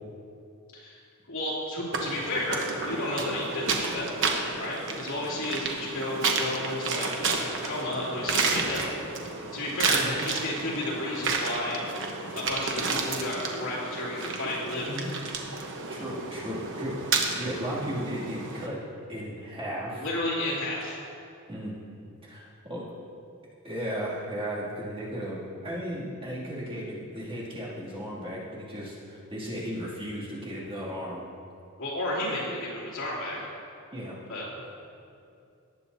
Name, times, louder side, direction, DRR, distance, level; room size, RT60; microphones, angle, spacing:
voice 1, 1.3-4.1 4.6-7.1 7.3-8.8 9.5-11.8 12.3-14.9 19.9-21.0 31.8-33.4 34.3-34.4, left 1 dB, 65° left, -7 dB, 2.9 m, -32 dB
sound 1, 1.9-18.7, right 4 dB, 60° right, 1.1 m, -31 dB
voice 2, 14.8-15.1 15.9-18.8 19.1-20.0 21.5-21.7 22.2-22.9 23.6-31.3 33.9-34.2, equal, 25° right, -8 dB, 2.6 m, -35 dB
19.0 x 8.2 x 2.8 m, 2.6 s
head